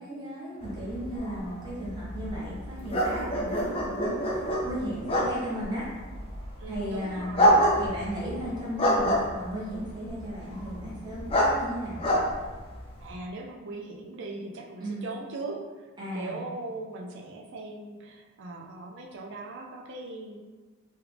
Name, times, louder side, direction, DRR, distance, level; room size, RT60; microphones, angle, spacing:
voice 1, 0.0-5.9 6.7-7.4 7.7-12.0 14.8-15.0 16.0-16.4, equal, 20° right, -8 dB, 1.0 m, -35 dB
sound 1, 0.6-13.1, equal, 25° left, 0.4 m, -28 dB
voice 2, 6.6-7.5 13.0-15.8 16.1-20.5, right 2 dB, 60° right, 1 dB, 0.4 m, -39 dB
3.1 x 2.3 x 3.4 m, 1.3 s
head